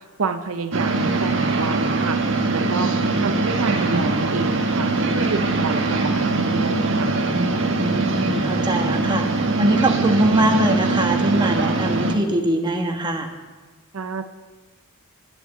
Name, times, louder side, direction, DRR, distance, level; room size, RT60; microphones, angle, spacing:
voice 1, 0.2-2.2 2.5-7.1 13.9-14.2, right 4 dB, 75° right, 8 dB, 0.8 m, -28 dB
sound 1, 0.7-12.2, right 3 dB, 60° right, 1.6 m, -22 dB
voice 2, 7.8-9.3 9.6-13.3, right 1 dB, 20° right, 3 dB, 1.3 m, -22 dB
11.0 x 11.0 x 8.1 m, 1.4 s
head